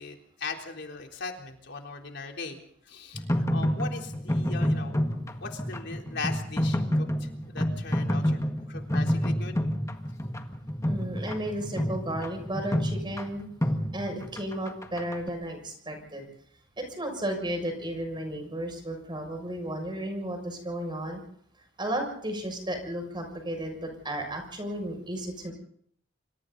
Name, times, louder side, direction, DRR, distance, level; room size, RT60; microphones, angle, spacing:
voice 1, 0.0-2.6 2.9-8.4 8.7-9.6, left 4 dB, 65° left, 2 dB, 3.8 m, -39 dB
sound 1, 3.1-15.3, equal, 15° left, 1.8 m, -29 dB
voice 2, 10.8-13.5 13.9-16.3 16.8-21.2 21.8-25.5, right 1 dB, 25° right, 4 dB, 6.6 m, -33 dB
27.0 x 25.5 x 4.1 m, 0.63 s
head